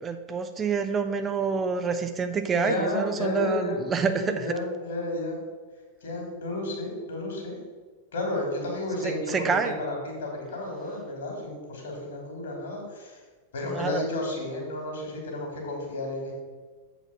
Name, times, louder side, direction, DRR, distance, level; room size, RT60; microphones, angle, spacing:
voice 1, 0.0-4.5 9.0-9.7 13.7-14.0, right 5 dB, 20° right, 8 dB, 0.5 m, -27 dB
voice 2, 2.6-3.8 4.0-5.4 6.0-7.6 8.1-13.2 13.5-16.3, left 1 dB, 65° left, 0 dB, 2.6 m, -32 dB
7.6 x 5.0 x 5.6 m, 1.4 s
figure-of-eight pair, 90°, 0 cm